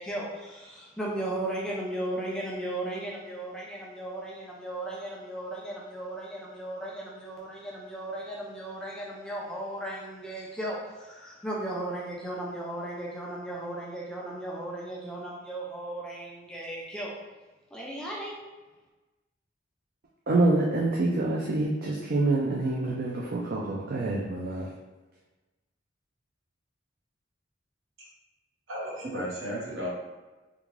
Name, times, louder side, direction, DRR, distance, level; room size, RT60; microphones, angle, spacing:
voice 1, 0.0-17.1 17.7-18.4, right 1 dB, 5° left, -4 dB, 0.5 m, -36 dB
voice 2, 20.3-24.7, right 2 dB, 50° right, -3 dB, 0.4 m, -26 dB
voice 3, 28.7-29.9, equal, 70° right, -6 dB, 1.2 m, -34 dB
3.6 x 2.4 x 3.1 m, 1.2 s
head